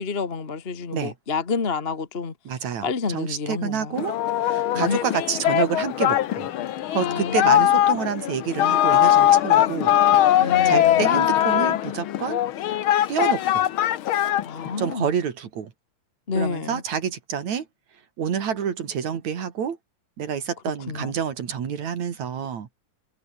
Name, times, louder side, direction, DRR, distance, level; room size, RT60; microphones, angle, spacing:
voice 1, 0.0-2.3 2.8-4.0 4.7-5.0 7.0-7.8 10.4-11.1 14.4-15.1 16.3-16.8 20.9-21.1, left 4 dB, 30° left, 1.2 m, -29 dB
voice 2, 2.5-6.5 6.9-10.0 10.3-12.4 13.1-13.7 14.8-15.7 16.4-17.7 18.2-19.8 20.2-22.7, right 7 dB, 70° right, 3.5 m, -28 dB
Singing, 4.0-14.9, left 12 dB, 65° left, 1.3 m, -21 dB
omnidirectional pair, 3.4 m